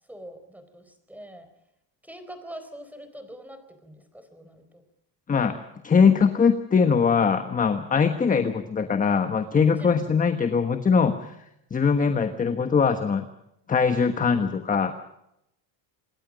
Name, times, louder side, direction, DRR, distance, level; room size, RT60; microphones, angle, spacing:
voice 1, 0.1-1.5 2.0-4.8 9.7-10.1, equal, 5° right, 9 dB, 4.0 m, -44 dB
voice 2, 5.3-5.6 5.8-11.3 11.7-13.3 13.7-14.9, left 6 dB, 15° left, 8 dB, 1.3 m, -21 dB
27.0 x 22.0 x 5.2 m, 0.81 s
cardioid pair, 155°, 47 cm